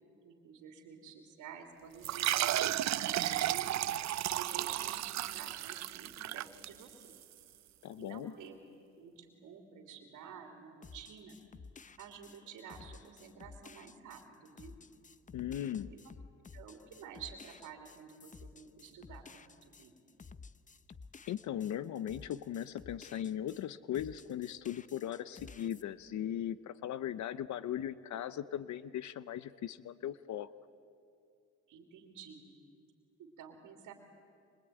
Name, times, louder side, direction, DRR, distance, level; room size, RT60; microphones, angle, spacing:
voice 1, 0.2-3.8 4.2-7.1 8.0-8.5 8.9-11.4 12.0-14.8 15.9-16.0 16.5-19.9 31.7-32.5 33.2-33.9, right 7 dB, 80° right, 3 dB, 3.0 m, -51 dB
sound 1, 2.0-7.2, right 13 dB, 60° right, 0.6 m, -33 dB
voice 2, 7.8-8.3 15.3-15.9 21.3-30.5, left 11 dB, 70° left, 16 dB, 0.8 m, -38 dB
sound 2, 10.8-23.7 23.9-25.8, left 4 dB, 25° left, 0.7 m, -53 dB
24.5 x 23.5 x 9.2 m, 2.4 s
cardioid pair, 90°, 30 cm